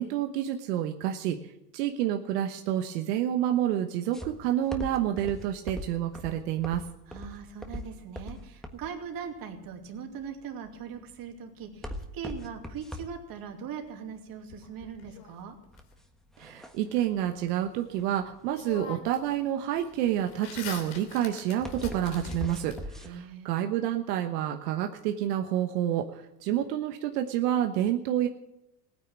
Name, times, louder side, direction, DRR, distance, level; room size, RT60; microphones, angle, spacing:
voice 1, 0.0-1.4 1.7-6.8 16.4-28.3, right 11 dB, 85° right, 4 dB, 1.3 m, -29 dB
sound 1, 4.1-23.1, left 1 dB, ahead, 1.4 m, -42 dB
voice 2, 7.1-15.6 23.0-23.5, right 7 dB, 45° right, 3 dB, 2.7 m, -40 dB
sound 2, 14.5-15.8 18.0-18.1 18.5-19.3 19.6-22.8, left 7 dB, 70° left, 3.2 m, -44 dB
16.5 x 9.7 x 7.4 m, 0.83 s
supercardioid pair, 120°, 47 cm